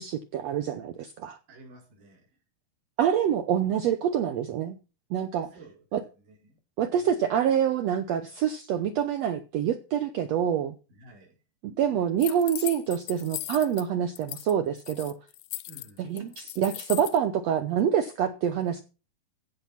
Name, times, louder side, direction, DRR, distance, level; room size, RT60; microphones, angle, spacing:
voice 1, 0.0-1.4 3.0-4.8 5.1-5.5 5.9-6.0 6.8-10.7 11.6-15.1 16.0-18.8, right 9 dB, 90° right, 1.4 m, -26 dB
voice 2, 1.5-2.4 5.5-5.8 6.1-6.6 7.0-7.1 10.9-11.4 15.7-16.1, right 1 dB, 60° right, 5.9 m, -52 dB
sound 1, 12.2-13.8 14.2-14.5 14.8-17.2, left 16 dB, 75° left, 1.8 m, -38 dB
16.0 x 5.8 x 5.8 m
omnidirectional pair, 4.2 m